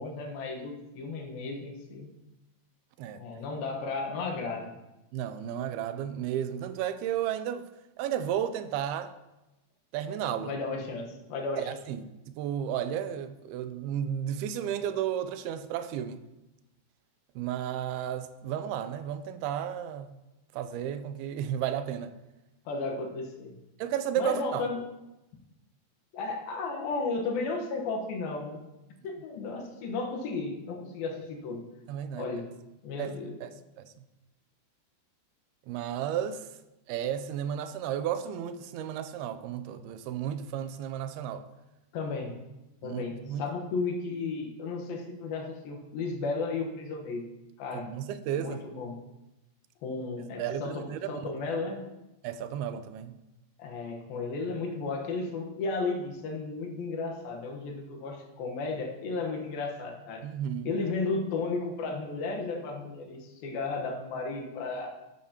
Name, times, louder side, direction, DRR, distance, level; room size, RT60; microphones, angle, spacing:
voice 1, 0.0-2.1 3.1-4.7 10.4-11.7 22.7-23.5 24.2-24.8 26.1-28.6 29.0-31.7 32.2-32.5 32.8-33.3 41.9-42.4 42.8-47.3 47.6-47.9 48.3-49.0 49.8-51.8 53.6-60.3 60.6-64.9, left 3 dB, 75° left, 3.1 m, -34 dB
voice 2, 5.1-7.7 8.0-9.1 9.9-10.5 11.6-12.0 12.3-16.2 17.4-20.2 20.5-22.1 23.8-24.7 31.9-32.3 33.0-33.1 33.4-33.5 35.7-36.4 36.9-41.4 42.8-43.4 47.7-48.6 50.4-51.2 52.2-53.2 60.2-60.7, right 9 dB, 90° right, 2.6 m, -33 dB
12.0 x 12.0 x 2.9 m
omnidirectional pair, 4.4 m